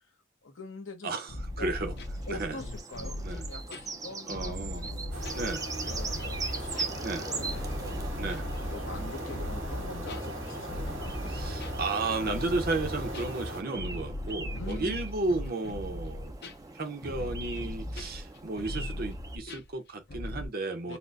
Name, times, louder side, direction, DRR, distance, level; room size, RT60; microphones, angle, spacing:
voice 1, 0.4-1.1 1.6-1.7 2.3-8.2 8.7-11.1 14.5-15.0 20.9-21.0, left 3 dB, 70° left, 1.0 m, -44 dB
voice 2, 1.0-1.9 2.3-2.6 3.2-3.4 4.3-4.9 5.3-5.6 7.0-7.3 8.2-8.5 11.3-16.3 16.7-21.0, right 2 dB, 50° right, 0.8 m, -33 dB
sound 1, 1.2-19.4, right 4 dB, 20° right, 0.5 m, -41 dB
sound 2, 1.3-20.5, left 1 dB, 55° left, 0.7 m, -38 dB
sound 3, 5.1-13.6, equal, 80° right, 2.0 m, -38 dB
4.2 x 2.2 x 2.5 m
head